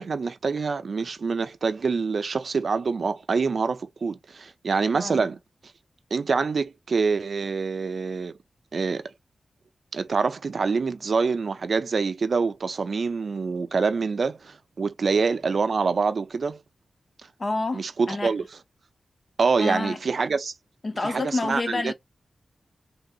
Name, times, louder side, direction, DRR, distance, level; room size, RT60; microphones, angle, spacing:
voice 1, 0.0-5.4 6.1-8.3 8.7-9.1 9.9-16.6 17.2-17.3 17.7-18.4 19.4-20.5 21.0-21.9, right 4 dB, 60° right, 0.4 m, -26 dB
voice 2, 4.9-5.3 17.4-18.3 19.6-20.0 20.8-21.9, left 2 dB, 40° left, 0.7 m, -28 dB
3.3 x 2.7 x 2.3 m
wide cardioid pair, 95°, 0 cm